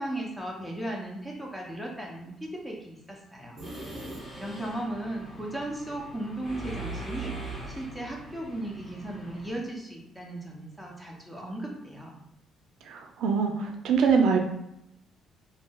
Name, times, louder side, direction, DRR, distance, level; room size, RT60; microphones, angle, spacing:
voice 1, 0.0-3.6 4.0-12.2, right 1 dB, 5° left, -1 dB, 0.5 m, -36 dB
Mechanisms, 3.6-9.5, right 2 dB, 20° left, 1.5 m, -41 dB
sound 1, 3.6-4.8, right 1 dB, 45° right, 0.8 m, -41 dB
voice 2, 12.9-14.4, right 5 dB, 75° right, 4 dB, 0.4 m, -24 dB
3.1 x 2.6 x 2.2 m, 0.80 s
cardioid pair, 150°, 0 cm